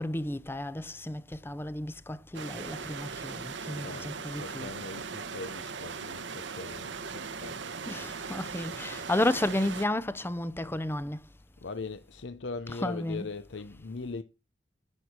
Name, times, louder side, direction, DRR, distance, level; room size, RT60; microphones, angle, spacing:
voice 1, 0.0-4.7 7.9-11.2 12.7-13.3, left 1 dB, 10° left, 0.6 m, -32 dB
sound 1, 2.3-9.9, right 5 dB, 70° right, 1.1 m, -39 dB
voice 2, 3.7-7.6 11.6-14.2, left 3 dB, 70° left, 0.7 m, -40 dB
10.5 x 8.5 x 4.4 m
head